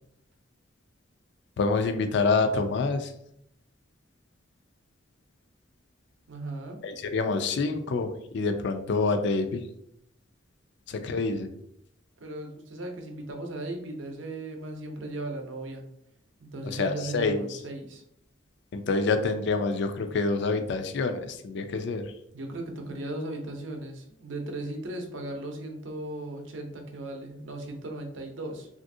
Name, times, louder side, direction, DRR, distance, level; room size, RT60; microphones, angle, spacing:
voice 1, 1.6-3.1 6.8-9.6 10.9-11.5 16.6-17.6 18.7-22.1, left 3 dB, 65° left, 7 dB, 0.4 m, -27 dB
voice 2, 6.3-6.8 12.2-15.8 16.4-18.0 22.3-28.7, right 2 dB, 80° right, 3 dB, 0.6 m, -37 dB
3.3 x 2.5 x 2.6 m, 0.72 s
head